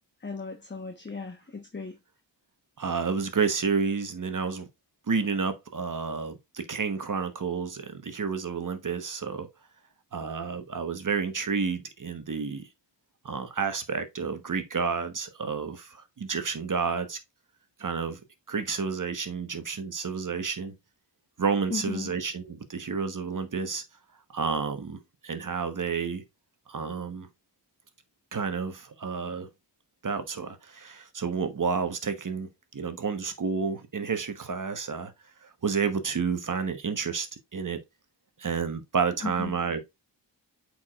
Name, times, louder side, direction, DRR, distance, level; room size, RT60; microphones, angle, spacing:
voice 1, 0.2-2.0 21.7-22.1 39.2-39.5, left 4 dB, 25° left, 1.1 m, -36 dB
voice 2, 2.8-4.7 5.1-9.5 10.1-12.7 13.2-17.2 17.8-18.2 18.5-20.7 21.4-23.8 24.3-26.2 26.7-27.3 28.3-29.5 30.0-35.1 35.4-37.3 37.5-37.8 38.4-39.8, right 5 dB, 45° right, 1.2 m, -30 dB
8.3 x 4.8 x 2.4 m
wide cardioid pair, 75°, 44 cm